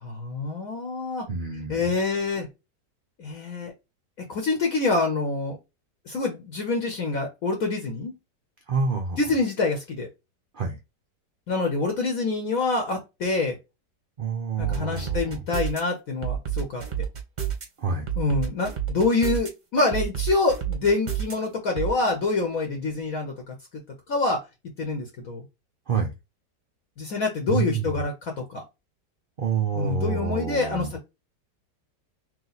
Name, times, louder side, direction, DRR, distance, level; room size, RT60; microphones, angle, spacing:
voice 1, 0.0-1.3 1.7-2.5 3.2-3.7 4.3-5.6 6.1-8.1 9.2-10.1 11.5-13.6 14.6-16.8 18.2-23.5 24.1-24.4 24.8-25.4 27.0-28.6 29.7-31.0, left 3 dB, 60° left, 1.2 m, -26 dB
voice 2, 1.3-1.8 8.7-9.2 10.5-10.8 14.2-15.4 17.8-18.1 25.9-26.1 27.5-27.9 29.4-30.9, right 5 dB, 80° right, 0.4 m, -27 dB
sound 1, 14.6-15.8 16.2-17.6 18.1-19.5 19.9-21.3 21.8-21.9, right 10 dB, 35° right, 0.8 m, -28 dB
3.1 x 3.0 x 4.0 m
omnidirectional pair, 1.8 m